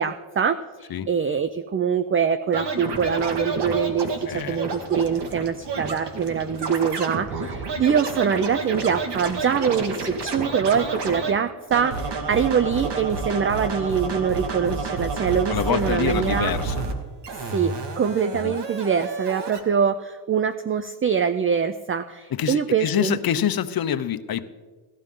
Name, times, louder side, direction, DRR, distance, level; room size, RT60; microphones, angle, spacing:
voice 1, 0.0-16.5 17.3-23.2, right 7 dB, 25° right, 11 dB, 0.5 m, -24 dB
Scratching (performance technique), 2.5-11.3 11.7-16.9 17.2-19.6, right 3 dB, 55° right, 2.1 m, -30 dB
voice 2, 4.3-4.6 15.5-16.8 18.4-18.6 22.3-24.5, left 9 dB, 50° left, 11 dB, 0.9 m, -26 dB
18.0 x 12.5 x 3.8 m, 1.4 s
cardioid pair, 90°, 48 cm